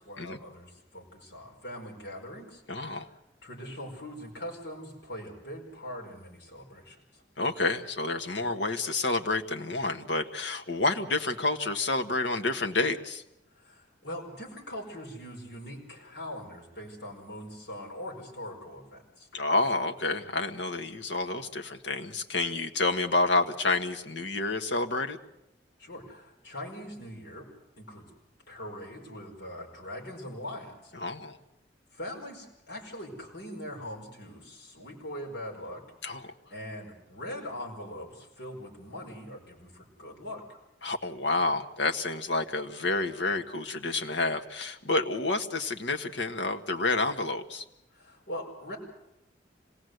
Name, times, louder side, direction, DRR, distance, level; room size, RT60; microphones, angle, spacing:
voice 1, 0.0-7.2 13.5-19.3 25.8-27.5 27.8-28.1 28.5-31.2 31.9-40.6 47.9-48.8, left 1 dB, 70° left, -1 dB, 4.9 m, -42 dB
voice 2, 2.7-3.1 7.4-13.2 19.3-25.2 30.9-31.4 36.0-36.3 40.8-47.6, left 3 dB, 85° left, 5 dB, 1.4 m, -29 dB
26.0 x 18.0 x 8.0 m, 0.90 s
head